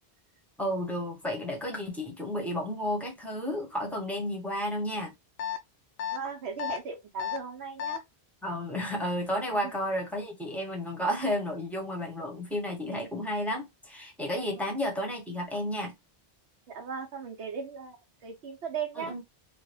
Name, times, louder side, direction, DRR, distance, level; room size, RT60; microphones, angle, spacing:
voice 1, 0.6-5.1 8.4-15.9 18.9-19.2, equal, ahead, 0.9 m, -32 dB
sound 1, 5.4-5.6 6.0-6.2 6.6-6.8 7.2-7.4 7.8-8.0, left 9 dB, 70° left, 0.7 m, -32 dB
voice 2, 6.1-8.0 9.6-9.7 14.6-14.7 16.7-19.1, right 6 dB, 80° right, 1.0 m, -37 dB
3.0 x 2.3 x 3.3 m
omnidirectional pair, 1.1 m